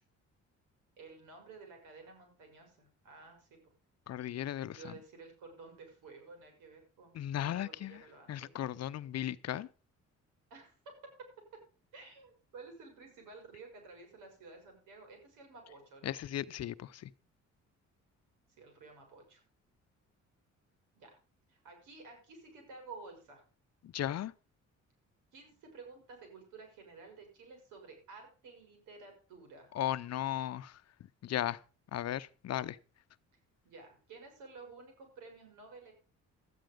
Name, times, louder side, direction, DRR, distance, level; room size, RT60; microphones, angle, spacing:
voice 1, 1.0-3.7 4.4-8.5 10.5-11.6 11.9-16.2 18.6-19.4 21.0-21.2 21.5-23.4 25.3-29.7 33.6-35.9, right 4 dB, 90° right, 5.5 m, -53 dB
voice 2, 4.1-4.9 7.1-8.0 8.3-9.7 16.0-17.1 23.9-24.3 29.7-30.7 31.2-31.6 31.9-32.8, left 12 dB, 60° left, 0.7 m, -36 dB
13.0 x 9.2 x 5.1 m
cardioid pair, 90°, 30 cm